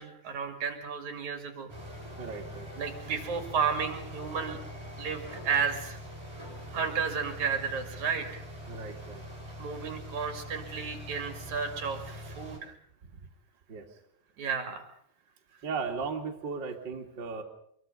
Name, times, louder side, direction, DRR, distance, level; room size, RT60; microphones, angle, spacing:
voice 1, 0.0-1.7 2.8-4.6 5.0-6.0 6.7-8.4 9.6-12.8 14.4-14.9, right 6 dB, 60° right, 5 dB, 3.5 m, -32 dB
sound 1, 1.7-12.6, equal, 5° right, 6.3 m, -43 dB
voice 2, 2.2-2.7 8.7-9.2 13.7-13.9 15.6-17.4, right 5 dB, 35° right, 1 dB, 2.8 m, -36 dB
25.0 x 23.0 x 5.5 m, 0.69 s
omnidirectional pair, 4.0 m